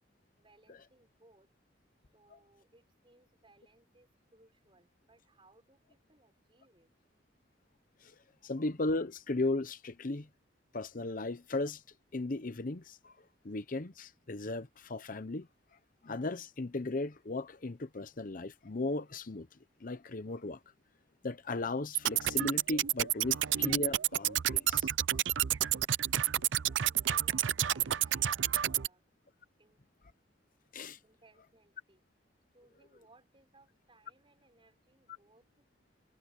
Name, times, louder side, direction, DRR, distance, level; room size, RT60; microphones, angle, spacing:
voice 1, 0.4-1.5 2.1-6.9 26.6-29.0 29.6-29.8 31.0-32.0 32.5-35.7, right 2 dB, 30° right, 6.3 m, -65 dB
voice 2, 8.4-10.3 10.7-11.8 12.1-13.2 13.4-15.5 16.0-19.5 19.8-20.6 21.2-24.9 26.3-26.4 30.7-31.0, left 2 dB, 45° left, 0.8 m, -36 dB
sound 1, 21.9-28.9, right 12 dB, 80° right, 0.5 m, -30 dB
head